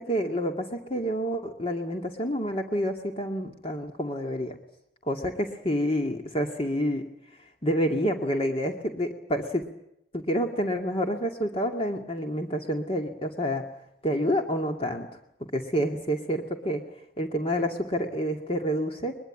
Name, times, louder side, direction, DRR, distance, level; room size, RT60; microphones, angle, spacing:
voice 1, 0.0-4.5 5.0-7.0 7.6-9.6 10.1-13.6 14.0-15.1 15.5-16.8 17.2-19.2, equal, 30° left, 3 dB, 2.4 m, -28 dB
23.0 x 22.5 x 8.7 m, 0.80 s
head